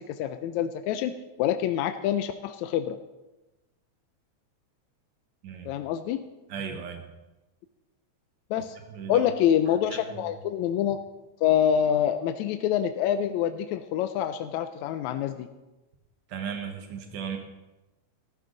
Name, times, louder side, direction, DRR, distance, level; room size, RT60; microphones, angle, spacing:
voice 1, 0.0-3.0 5.7-6.2 8.5-8.8 9.1-11.0 11.4-15.5, left 10 dB, 80° left, 9 dB, 1.9 m, -26 dB
voice 2, 6.5-7.0 8.9-9.3 9.9-10.3 16.3-17.4, right 7 dB, 45° right, 4 dB, 1.8 m, -36 dB
14.5 x 13.0 x 3.9 m, 1.0 s
omnidirectional pair, 3.3 m